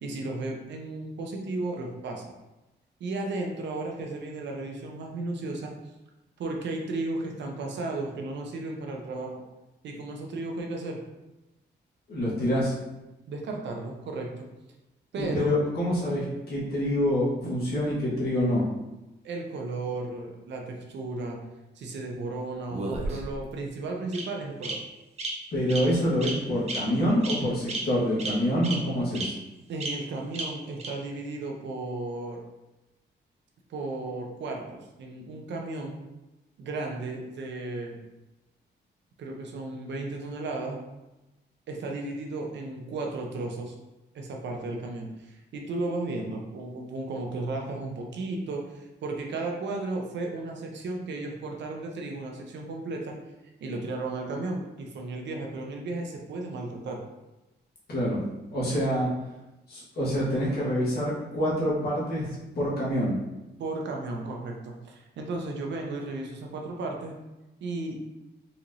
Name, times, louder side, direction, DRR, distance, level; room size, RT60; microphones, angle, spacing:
voice 1, 0.0-2.2 3.0-5.7 6.4-9.4 9.8-11.0 13.3-14.4 15.1-15.5 19.2-21.4 21.8-24.8 29.7-32.4 33.7-36.0 36.6-38.0 39.2-40.8 41.7-43.7 44.1-53.1 53.6-57.0 63.6-67.1 67.6-68.0, right 2 dB, 75° right, 1 dB, 0.7 m, -34 dB
voice 2, 12.1-12.7 15.2-18.7 25.5-29.3 57.9-58.2 58.5-59.1 59.7-62.3 62.5-63.2, equal, 60° left, -7 dB, 1.4 m, -26 dB
Bird vocalization bird call bird song, 22.7-23.5 24.1-24.2 24.6-24.7 25.2-25.3 25.7-25.8 26.2-26.3 26.7-26.8 27.2-27.4 27.7-27.8 28.2-28.3 28.6-28.7 29.1-29.2 29.8-29.9 30.3-30.4 30.8-30.9, right 3 dB, 35° right, 0.6 m, -32 dB
4.2 x 3.0 x 2.5 m, 1.0 s
wide cardioid pair, 170°, 18 cm